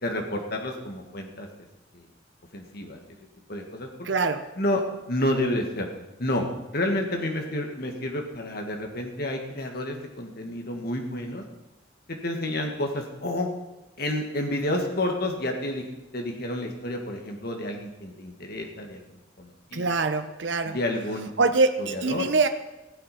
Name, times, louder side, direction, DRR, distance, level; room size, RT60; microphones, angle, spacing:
voice 1, 0.0-1.5 1.9-2.1 2.5-3.0 3.5-3.9 4.6-4.8 5.1-5.9 6.2-11.4 12.1-13.5 14.0-15.9 16.1-19.0 19.4-19.9 20.7-21.3 21.8-22.3, left 1 dB, 55° left, 3 dB, 1.8 m, -30 dB
voice 2, 4.0-4.4 19.7-20.8 21.4-22.5, right 3 dB, 75° right, 8 dB, 0.8 m, -24 dB
16.0 x 8.0 x 5.9 m, 1.0 s
head